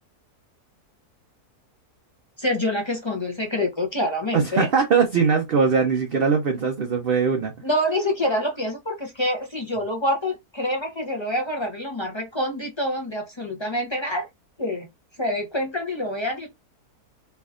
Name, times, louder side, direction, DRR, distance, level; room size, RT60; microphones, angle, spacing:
voice 1, 2.4-4.7 7.6-14.3 14.6-14.9 15.2-16.5, left 1 dB, 35° left, 0.4 m, -26 dB
voice 2, 4.3-7.5, right 5 dB, 55° right, 0.7 m, -21 dB
4.5 x 2.6 x 2.4 m
omnidirectional pair, 1.6 m